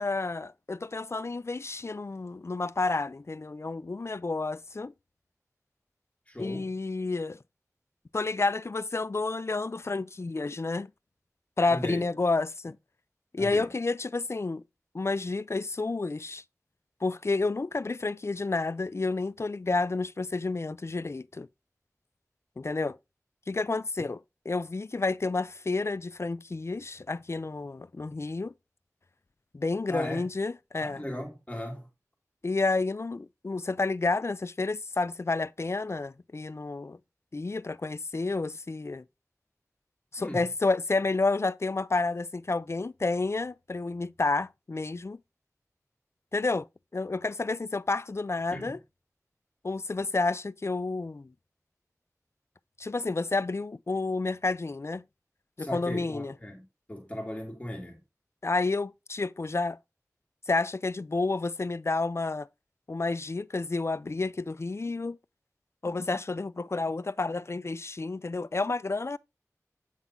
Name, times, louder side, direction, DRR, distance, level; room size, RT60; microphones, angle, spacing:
voice 1, 0.0-4.9 6.4-7.4 8.1-10.9 11.6-12.8 13.3-14.6 14.9-16.4 17.0-21.5 22.6-23.0 23.5-28.5 29.5-31.0 32.4-37.0 37.3-39.0 40.1-45.2 46.3-46.7 46.9-48.8 49.6-51.3 52.8-55.0 55.6-56.3 58.4-59.8 60.5-62.5 62.9-65.2 65.8-69.2, left 3 dB, 50° left, 0.4 m, -30 dB
voice 2, 6.3-6.7 11.7-12.1 13.4-13.7 24.0-24.1 29.9-30.3 30.8-31.9 40.2-40.5 48.5-48.8 55.6-56.6 56.9-58.0, equal, 20° left, 2.0 m, -37 dB
8.2 x 3.8 x 4.2 m
wide cardioid pair, 45°, 6 cm